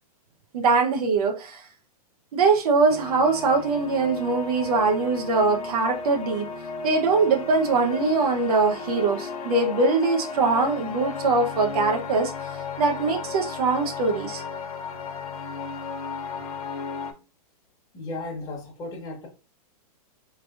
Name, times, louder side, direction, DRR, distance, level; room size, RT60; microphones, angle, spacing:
voice 1, 0.5-1.7 2.3-6.5 6.8-12.5 12.8-14.4, right 4 dB, 70° right, 0.8 m, -22 dB
sound 1, 2.9-17.1, left 4 dB, 70° left, 0.8 m, -35 dB
voice 2, 17.9-19.3, left 2 dB, 20° left, 1.2 m, -35 dB
3.7 x 3.3 x 2.4 m
supercardioid pair, 165°, 20 cm